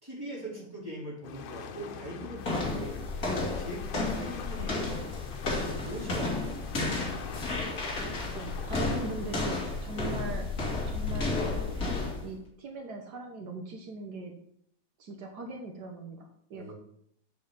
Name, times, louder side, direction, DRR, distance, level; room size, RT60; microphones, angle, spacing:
voice 1, 0.0-3.0 3.6-4.9 5.2-5.3 5.8-6.9 16.5-16.7, right 1 dB, 5° right, -6 dB, 4.1 m, -41 dB
sound 1, 1.2-9.7, left 7 dB, 85° left, 2.4 m, -44 dB
sound 2, 2.4-12.3, left 3 dB, 30° left, 2.2 m, -32 dB
voice 2, 8.3-10.5 10.9-14.3 15.0-16.7, right 2 dB, 75° right, 2 dB, 0.9 m, -40 dB
7.6 x 6.8 x 7.0 m, 0.69 s
omnidirectional pair, 3.6 m